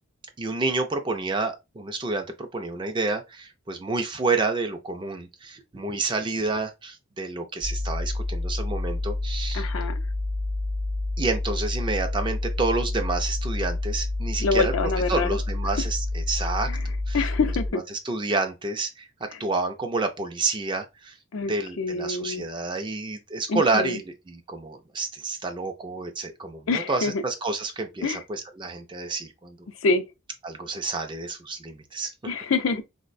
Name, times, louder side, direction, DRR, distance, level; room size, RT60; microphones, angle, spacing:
voice 1, 0.4-9.7 11.2-16.7 17.1-17.2 17.7-21.1 21.5-29.6 30.4-32.1, right 3 dB, 20° right, 0.3 m, -29 dB
sound 1, 7.6-17.7, left 2 dB, 70° right, 0.6 m, -28 dB
voice 2, 9.5-9.9 14.4-15.4 16.7-16.8 17.1-17.8 21.3-22.5 23.5-24.0 26.7-27.2 28.0-28.2 29.8-30.0 32.2-32.8, left 3 dB, 65° left, 0.5 m, -26 dB
3.9 x 2.1 x 2.4 m
head